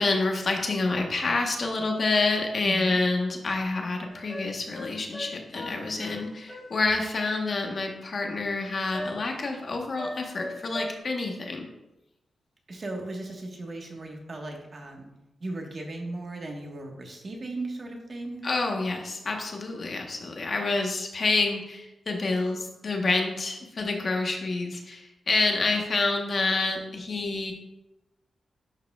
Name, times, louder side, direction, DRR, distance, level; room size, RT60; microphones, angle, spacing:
voice 1, 0.0-11.7 18.4-27.5, left 3 dB, 50° left, 2 dB, 1.1 m, -28 dB
voice 2, 2.6-2.9 12.7-15.1 15.4-18.4, right 2 dB, 40° right, 1 dB, 1.4 m, -36 dB
sound 1, 4.1-6.8 8.9-9.4 10.0-11.0, left 1 dB, 5° left, 2.2 m, -39 dB
11.0 x 4.8 x 2.4 m, 0.94 s
cardioid pair, 95°, 0 cm